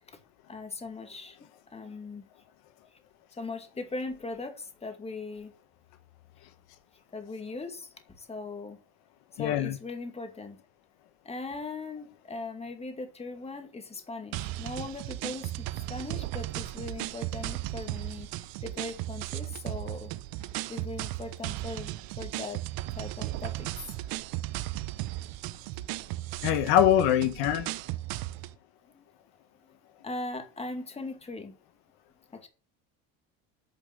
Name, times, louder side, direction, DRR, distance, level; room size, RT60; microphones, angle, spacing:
voice 1, 0.5-1.4 1.7-2.2 2.9-3.0 3.3-5.5 6.9-8.8 9.3-10.6 11.2-20.1 20.7-22.6 22.9-23.9 28.9-29.1 30.0-31.5 32.3-32.5, left 3 dB, 15° left, 2.2 m, -39 dB
voice 2, 9.4-9.8 26.4-27.7, left 11 dB, 70° left, 1.5 m, -23 dB
sound 1, 14.3-28.6, right 17 dB, 70° right, 0.9 m, -36 dB
9.4 x 5.4 x 7.6 m
cardioid pair, 120°, 38 cm